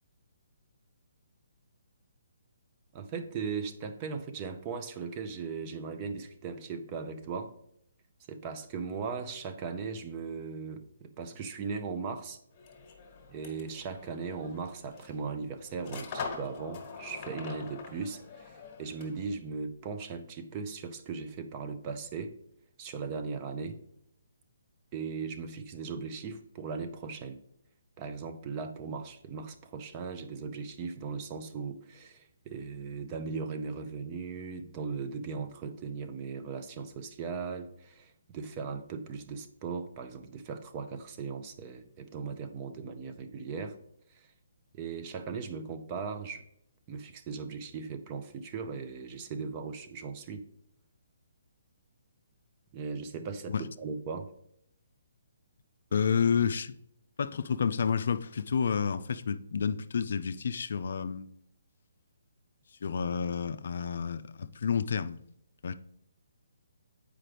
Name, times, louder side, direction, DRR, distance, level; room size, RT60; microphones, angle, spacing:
voice 1, 2.9-7.5 8.3-12.4 13.3-22.3 22.8-23.8 24.9-27.4 28.0-43.8 44.1-44.3 44.7-46.4 46.9-50.5 52.7-54.3, right 5 dB, 25° right, 0.6 m, -38 dB
sound 1, 12.5-19.3, left 5 dB, 30° left, 1.3 m, -44 dB
voice 2, 55.9-56.7 57.2-61.3 62.8-65.2 65.6-65.7, left 6 dB, 65° left, 0.3 m, -30 dB
7.5 x 4.9 x 3.3 m
hypercardioid pair, 150°, 0 cm